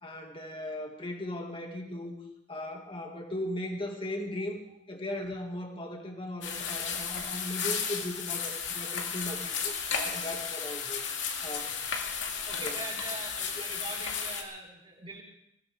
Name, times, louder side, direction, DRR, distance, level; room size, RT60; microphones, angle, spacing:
voice 1, 0.0-2.1 2.5-4.6 4.9-11.0 11.4-11.7 12.6-12.8, left 1 dB, 30° left, 2 dB, 2.2 m, -38 dB
sound 1, 6.4-14.4, left 6 dB, 90° left, 2.2 m, -34 dB
voice 2, 12.5-15.2, right 2 dB, 30° right, -3 dB, 4.3 m, -42 dB
22.0 x 16.5 x 3.6 m, 0.78 s
head